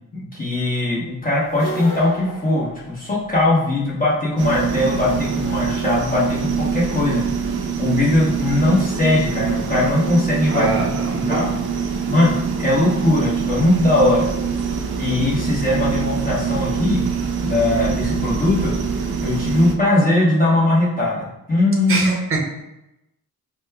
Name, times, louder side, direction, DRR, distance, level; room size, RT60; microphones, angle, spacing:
voice 1, 0.1-10.9 11.3-11.6 12.1-14.2 15.0-17.1 17.4-18.7 19.2-22.1, left 2 dB, 25° left, -7 dB, 1.0 m, -20 dB
sound 1, 1.5-3.5, left 1 dB, 65° left, 0.7 m, -32 dB
sound 2, 4.4-19.7, right 6 dB, 85° right, 0.5 m, -24 dB
voice 2, 10.5-11.5 21.9-22.4, right 2 dB, 35° right, -1 dB, 0.7 m, -23 dB
5.1 x 2.2 x 2.2 m, 0.90 s
wide cardioid pair, 165°, 36 cm